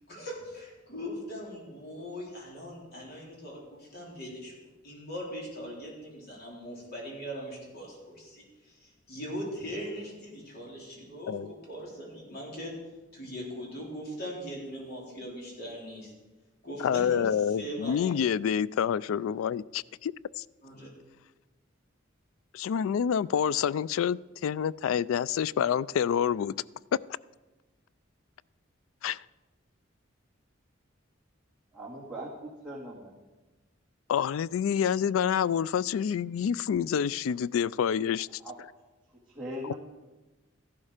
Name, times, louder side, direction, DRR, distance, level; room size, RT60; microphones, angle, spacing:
voice 1, 0.1-4.5 4.8-12.7 13.1-16.1 16.6-18.1 20.6-20.9, equal, 50° left, 3.9 m, -40 dB
voice 2, 16.8-20.1 22.5-26.5 29.0-29.2 34.1-38.3, left 8 dB, 80° left, 0.3 m, -27 dB
voice 3, 31.7-33.1 38.4-38.6 39.2-39.7, equal, 5° right, 2.0 m, -40 dB
14.5 x 11.5 x 5.0 m
head